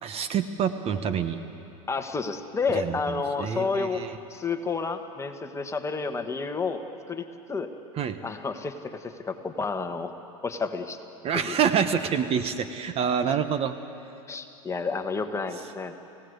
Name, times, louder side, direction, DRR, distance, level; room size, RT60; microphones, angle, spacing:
voice 1, 0.0-1.4 2.7-4.2 7.9-8.2 11.2-13.7, right 7 dB, 35° right, 10 dB, 1.1 m, -27 dB
voice 2, 1.9-6.8 7.1-7.7 8.2-10.1 10.4-11.0 11.3-11.6 13.3-13.4 14.3-16.0, left 4 dB, 15° left, 6 dB, 1.5 m, -30 dB
28.0 x 17.0 x 8.1 m, 2.8 s
hypercardioid pair, 115°, 18 cm